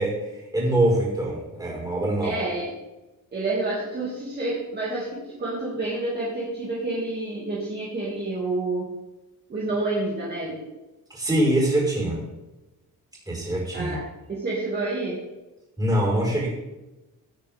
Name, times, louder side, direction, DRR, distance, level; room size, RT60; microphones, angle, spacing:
voice 1, 0.0-2.3 11.1-12.2 13.3-14.0 15.8-16.5, right 1 dB, 10° right, -5 dB, 5.2 m, -24 dB
voice 2, 2.2-2.7 3.3-8.9 9.5-10.6 13.7-14.0 14.3-15.2, right 2 dB, 30° right, -6 dB, 2.6 m, -28 dB
17.0 x 8.9 x 3.7 m, 1.0 s
wide cardioid pair, 180°, 36 cm